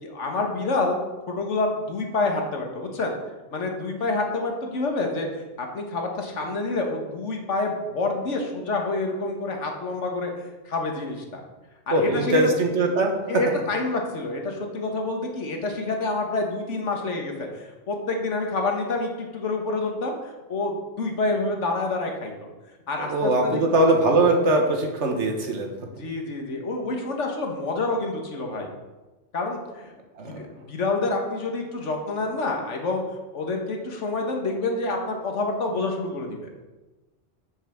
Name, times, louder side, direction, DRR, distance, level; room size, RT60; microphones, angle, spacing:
voice 1, 0.0-1.0 1.3-3.1 3.5-10.3 10.7-11.4 11.9-12.5 13.3-22.3 22.9-23.6 26.0-28.7 29.3-29.9 30.2-33.0 33.3-36.5, left 3 dB, 90° left, 2 dB, 1.7 m, -28 dB
voice 2, 11.9-13.1 23.1-25.7 30.2-30.4, right 2 dB, 80° right, 3 dB, 1.7 m, -21 dB
7.3 x 5.7 x 7.0 m, 1.2 s
omnidirectional pair, 1.2 m